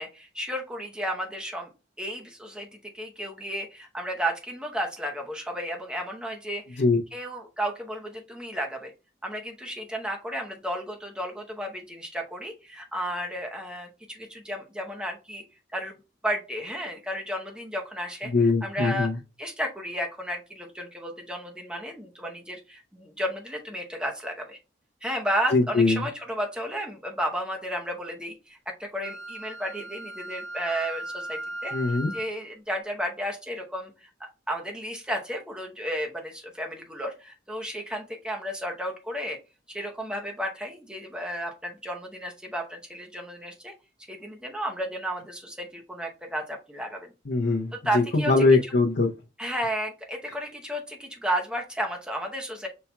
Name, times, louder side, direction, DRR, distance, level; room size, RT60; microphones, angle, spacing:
voice 1, 0.0-1.7 2.0-2.7 2.9-6.8 7.1-8.9 9.2-15.4 15.7-16.0 16.2-19.1 19.4-24.6 25.0-39.4 39.7-43.7 44.1-47.1 47.7-48.7 49.4-52.7, equal, 5° right, 2 dB, 0.8 m, -33 dB
voice 2, 18.3-19.1 25.5-26.0 31.7-32.1 47.3-47.7 48.3-49.1, left 3 dB, 70° left, -3 dB, 0.7 m, -21 dB
Wind instrument woodwind instrument, 29.0-32.4, right 1 dB, 80° right, 1.5 m, -37 dB
5.6 x 4.2 x 2.2 m, 0.30 s
head